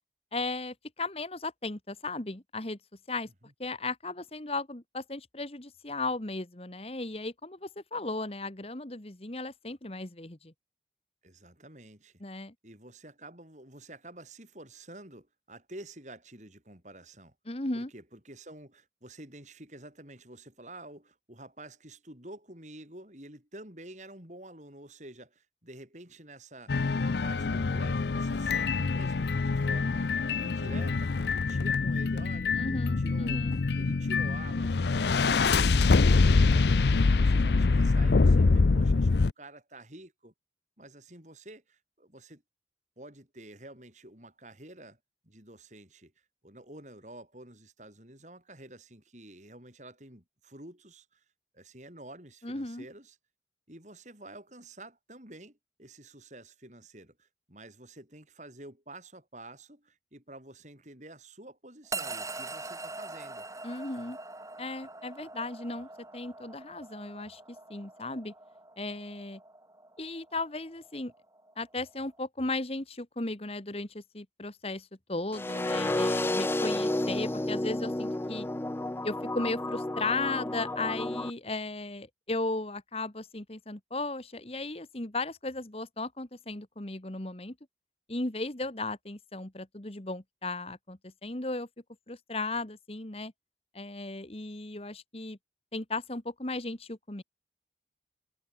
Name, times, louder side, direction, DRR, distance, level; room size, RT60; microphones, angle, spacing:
voice 1, 0.3-2.8 3.1-3.3 3.6-10.5 12.2-12.5 17.5-17.9 32.5-33.6 52.4-52.8 63.6-64.2 64.6-67.4 67.7-68.3 68.8-69.4 70.0-71.1 71.6-78.5 79.0-87.5 88.1-91.7 92.1-93.3 93.7-95.4 95.7-97.2, left 2 dB, 35° left, 1.6 m, -36 dB
voice 2, 11.2-12.2 12.6-17.3 17.7-36.0 36.3-36.8 37.1-40.3 40.8-42.4 43.0-45.0 45.2-46.1 46.4-51.2 51.5-53.2 53.7-63.5, right 1 dB, 40° right, 7.7 m, -49 dB
sound 1, 26.7-39.3, left 4 dB, 70° left, 0.6 m, -25 dB
sound 2, 61.9-72.3, right 3 dB, 20° right, 2.9 m, -43 dB
sound 3, 75.3-81.3, left 1 dB, 15° left, 0.4 m, -31 dB
head